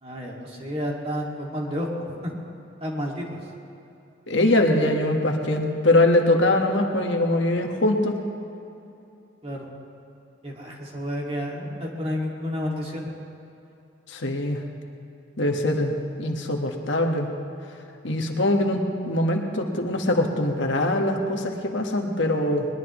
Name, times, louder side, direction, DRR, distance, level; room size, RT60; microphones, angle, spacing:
voice 1, 0.0-2.3 2.8-3.4 9.4-9.7 10.4-13.1, equal, 30° right, -2 dB, 2.2 m, -30 dB
voice 2, 4.3-8.2 14.1-14.6 15.4-17.3 18.0-22.7, left 1 dB, 70° left, 2 dB, 1.5 m, -22 dB
21.0 x 21.0 x 3.1 m, 2.8 s
head